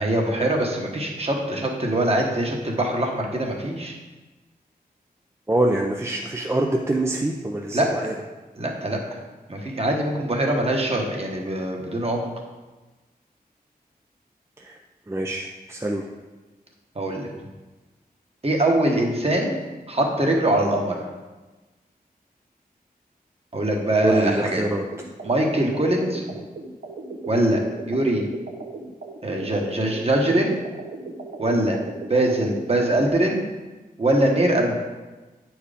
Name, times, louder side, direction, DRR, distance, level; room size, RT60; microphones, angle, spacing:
voice 1, 0.0-3.9 7.7-8.1 8.5-9.2 9.5-12.3 16.9-17.3 18.4-19.5 19.9-21.0 23.5-24.6 25.2-26.2 27.3-28.2 29.2-30.5 31.4-31.8 32.1-33.4 34.0-34.7, right 1 dB, 40° right, 0 dB, 1.4 m, -22 dB
voice 2, 5.5-8.1 14.6-14.8 15.1-16.1 24.0-24.9, right 1 dB, 15° right, 0 dB, 0.6 m, -25 dB
sound 1, 24.4-33.1, right 3 dB, 80° right, 1.0 m, -37 dB
8.8 x 4.7 x 5.1 m, 1.2 s
wide cardioid pair, 105°, 16 cm